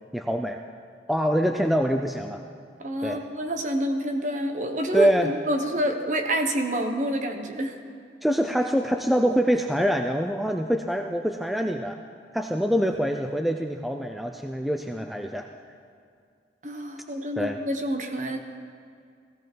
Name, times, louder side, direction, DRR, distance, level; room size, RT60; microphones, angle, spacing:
voice 1, 0.1-0.6 1.1-2.4 3.0-3.2 4.9-5.3 8.2-12.0 12.3-15.5 17.4-17.6, equal, ahead, 4 dB, 0.5 m, -25 dB
voice 2, 2.8-7.8 16.6-18.4, right 1 dB, 45° right, 5 dB, 1.3 m, -28 dB
18.0 x 15.5 x 4.6 m, 2.2 s
head